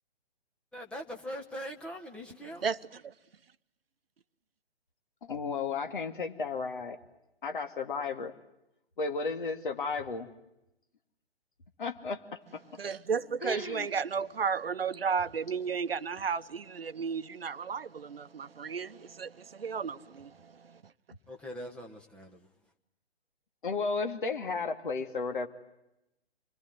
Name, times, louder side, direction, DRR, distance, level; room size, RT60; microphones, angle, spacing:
voice 1, 0.7-2.6 21.3-22.5, equal, 5° left, 1.2 m, -42 dB
voice 2, 5.2-7.0 7.4-8.3 9.0-10.3 11.8-12.6 13.4-13.9 23.6-25.5, left 4 dB, 50° left, 2.5 m, -33 dB
voice 3, 12.8-20.8, right 6 dB, 60° right, 1.0 m, -33 dB
27.0 x 21.5 x 9.4 m
figure-of-eight pair, 130°, 32 cm